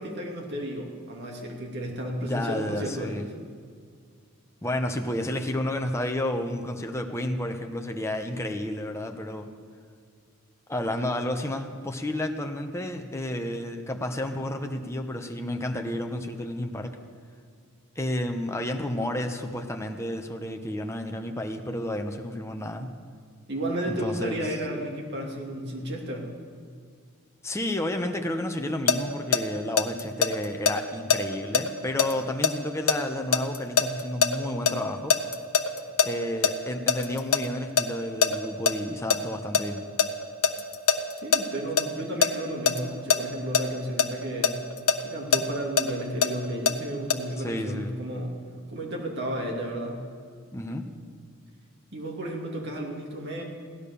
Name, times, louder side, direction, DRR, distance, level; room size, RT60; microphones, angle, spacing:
voice 1, 0.0-3.3 23.5-26.3 41.2-44.6 45.0-48.3 48.7-50.0 51.9-53.4, right 1 dB, 50° right, 0 dB, 2.6 m, -33 dB
voice 2, 2.2-3.3 4.6-9.5 10.7-17.0 18.0-22.9 23.9-24.5 27.4-35.1 36.0-39.9 47.4-47.9 50.5-50.8, left 1 dB, 10° left, 4 dB, 0.9 m, -31 dB
sound 1, 28.9-34.7 35.1-37.4 37.8-37.9 38.2-38.7 39.1-42.3 42.7-42.8 43.1-43.2 43.5-43.6 44.0-46.7 47.1-47.2, left 6 dB, 85° left, 1.0 m, -22 dB
17.0 x 11.0 x 6.9 m, 2.1 s
head